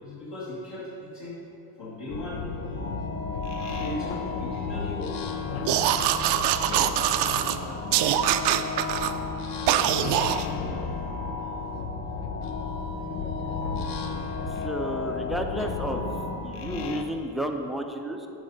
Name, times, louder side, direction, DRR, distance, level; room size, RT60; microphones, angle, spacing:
voice 1, 0.0-1.4 1.8-2.4 3.7-5.1 7.0-7.8 9.7-10.1 10.4-10.8 12.1-12.5, left 2 dB, 55° left, -8 dB, 1.9 m, -39 dB
sound 1, 2.1-17.0, left 6 dB, 75° left, 0.8 m, -35 dB
sound 2, 2.8-16.4, left 2 dB, 25° left, 1.1 m, -36 dB
sound 3, 5.7-7.6 7.9-9.1 9.7-10.5, right 11 dB, 55° right, 0.5 m, -23 dB
voice 2, 14.6-16.0 16.4-18.3, right 1 dB, ahead, 4 dB, 0.5 m, -31 dB
7.5 x 5.5 x 5.3 m, 2.9 s
supercardioid pair, 85°, 50 cm